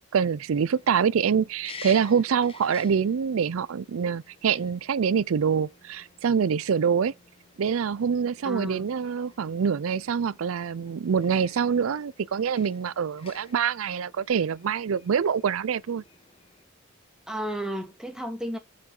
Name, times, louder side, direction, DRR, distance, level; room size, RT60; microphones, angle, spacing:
voice 1, 0.1-7.1 7.6-16.0, right 7 dB, 90° right, 0.4 m, -25 dB
sound 1, 0.7-16.6, left 4 dB, 25° left, 1.1 m, -51 dB
voice 2, 8.4-8.9 17.3-18.6, equal, 5° right, 1.9 m, -33 dB
7.2 x 6.7 x 3.8 m
head